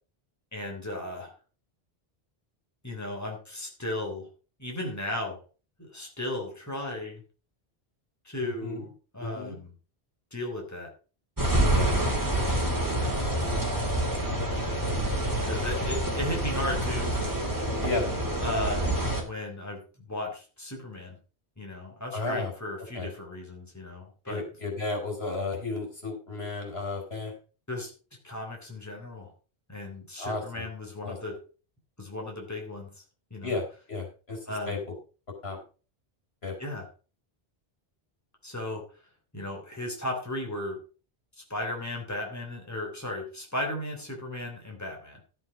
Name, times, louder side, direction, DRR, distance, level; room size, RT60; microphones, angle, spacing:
voice 1, 0.5-1.3 2.8-4.3 4.6-5.4 5.8-7.2 8.2-9.7 10.3-10.9 11.7-12.1 13.0-13.5 15.4-17.1 18.4-18.9 19.2-21.2 21.6-24.4 27.7-27.9 28.2-29.3 29.7-31.4 32.0-33.0 33.3-33.6 34.5-34.8 36.6-36.9 38.4-38.8 39.3-40.8 41.4-45.2, left 1 dB, 15° left, 1 dB, 3.4 m, -35 dB
voice 2, 8.4-8.8 9.2-9.6 11.7-12.0 17.8-18.1 22.1-22.5 22.9-23.1 24.3-27.3 30.2-30.7 31.0-31.2 33.4-34.8 35.4-35.6 36.4-36.5, left 3 dB, 75° left, 1 dB, 4.4 m, -33 dB
sound 1, 11.4-19.2, right 1 dB, 20° right, 2.6 m, -27 dB
13.5 x 7.8 x 5.1 m, 0.36 s
omnidirectional pair, 1.1 m